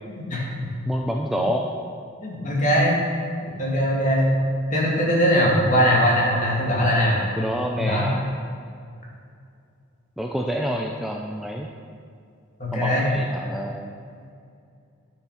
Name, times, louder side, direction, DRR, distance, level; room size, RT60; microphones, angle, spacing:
voice 1, 0.1-0.8 2.2-3.0 3.4-4.3 4.7-7.2 7.8-8.1 12.6-13.1, equal, 35° left, -4 dB, 2.3 m, -21 dB
voice 2, 0.9-1.7 7.4-8.3 10.2-11.7 12.7-13.9, equal, ahead, 0 dB, 0.4 m, -27 dB
11.0 x 6.6 x 5.7 m, 2.4 s
head